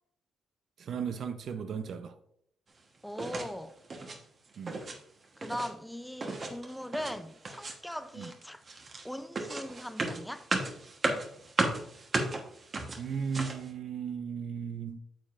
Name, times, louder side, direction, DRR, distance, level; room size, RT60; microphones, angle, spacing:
voice 1, 0.8-2.2 4.6-4.8 8.1-8.3 13.0-15.0, right 6 dB, 60° right, 0.6 m, -36 dB
voice 2, 3.0-3.8 5.4-8.6 9.0-10.5, equal, 5° left, 0.5 m, -40 dB
sound 1, 3.2-3.5 3.8-4.2 4.5-5.0 5.2-5.7 6.2-7.2 7.4-7.9 8.2-13.7, right 3 dB, 40° right, 1.2 m, -35 dB
8.9 x 7.2 x 2.5 m
cardioid pair, 90°, 0 cm